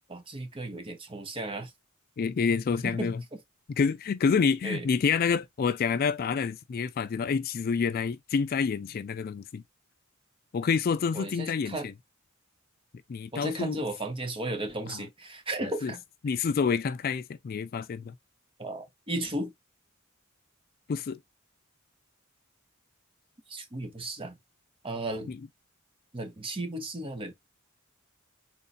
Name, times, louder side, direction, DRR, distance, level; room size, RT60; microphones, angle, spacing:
voice 1, 0.1-1.7 2.8-3.4 4.6-4.9 11.1-11.9 13.3-16.0 18.6-19.5 23.5-24.4 24.8-25.3 26.1-27.3, right 1 dB, 25° right, 0.8 m, -35 dB
voice 2, 2.2-3.2 3.7-9.6 10.5-11.9 13.1-13.8 14.9-15.0 15.8-15.9 16.2-18.1 20.9-21.2, left 5 dB, 45° left, 0.3 m, -28 dB
3.7 x 2.5 x 4.1 m
head